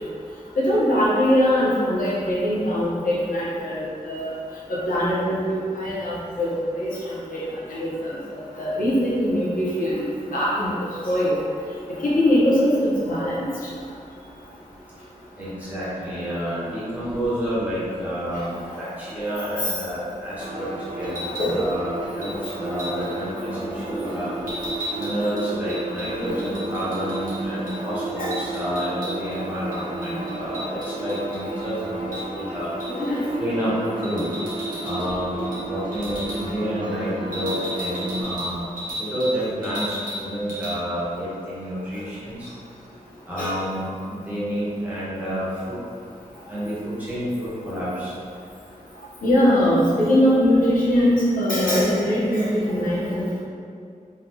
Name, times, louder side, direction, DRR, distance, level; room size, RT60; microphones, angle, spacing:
voice 1, 0.6-4.3 4.7-6.5 6.7-6.9 7.3-7.4 7.7-7.9 8.6-10.0 10.3-10.7 11.0-11.4 12.2-13.5 19.6-19.7 21.4-21.6 25.5-25.7 26.2-26.3 28.2-28.3 32.9-33.3 43.4-43.6 49.2-53.2, equal, 85° left, -8 dB, 0.8 m, -21 dB
voice 2, 15.4-24.3 24.9-32.7 33.4-34.3 34.8-38.7 39.0-42.5 43.2-45.8 46.5-48.1, equal, 10° right, -10 dB, 1.0 m, -29 dB
sound 1, 20.4-38.2, right 2 dB, 35° right, 0.5 m, -33 dB
sound 2, 21.0-21.5 22.2-22.4 22.8-23.1 24.5-27.4 27.7-27.8 28.1-29.4 29.7-31.7 32.1-32.3 32.8-33.0 34.0-35.1 35.4-35.6 35.9-36.4 37.3-39.4 39.6-40.2 40.5-40.7, equal, 80° right, 1.0 m, -34 dB
3.4 x 2.3 x 2.8 m, 2.3 s
wide cardioid pair, 130°, 14 cm